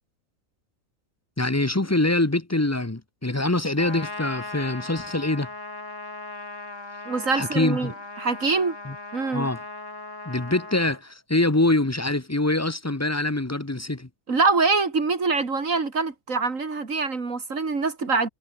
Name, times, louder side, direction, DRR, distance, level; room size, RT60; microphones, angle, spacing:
voice 1, 1.4-5.5 7.3-7.9 8.8-8.9 9.3-9.6 10.2-14.1, left 2 dB, 10° left, 1.0 m, -24 dB
Trumpet, 3.8-11.0, left 2 dB, 60° left, 4.9 m, -38 dB
voice 2, 7.1-7.9 8.2-8.8 9.1-9.5 14.3-18.3, right 4 dB, 65° right, 2.9 m, -24 dB
omnidirectional pair, 1.5 m